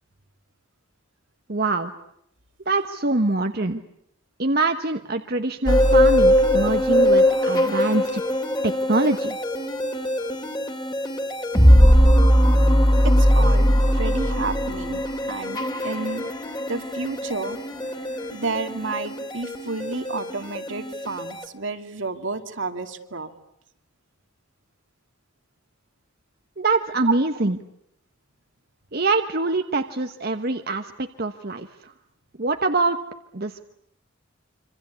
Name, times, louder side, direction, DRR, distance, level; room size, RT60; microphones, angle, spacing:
voice 1, 1.5-1.9 2.7-3.8 4.4-8.2 8.6-9.4 26.6-27.6 28.9-31.9 32.4-33.0 33.3-33.6, right 3 dB, 50° right, 6 dB, 1.2 m, -24 dB
sound 1, 5.7-21.4, equal, 20° left, 2.9 m, -20 dB
voice 2, 13.0-16.2 16.7-17.6 18.3-23.3 27.0-27.1 27.4-27.5, right 3 dB, 70° right, 7 dB, 2.5 m, -31 dB
26.5 x 25.5 x 8.4 m, 0.76 s
head